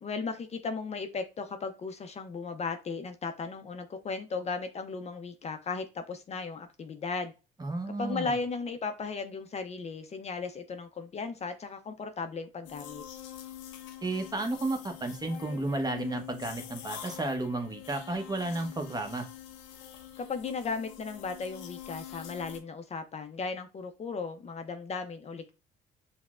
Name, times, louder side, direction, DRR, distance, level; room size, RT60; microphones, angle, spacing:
voice 1, 0.0-7.3 8.0-13.0 20.2-25.5, left 4 dB, 35° left, 0.5 m, -36 dB
voice 2, 7.6-8.3 14.0-19.3, right 2 dB, 20° right, 0.8 m, -32 dB
sound 1, 12.6-22.6, left 11 dB, 85° left, 0.5 m, -45 dB
5.6 x 2.1 x 2.4 m
supercardioid pair, 75°, 18 cm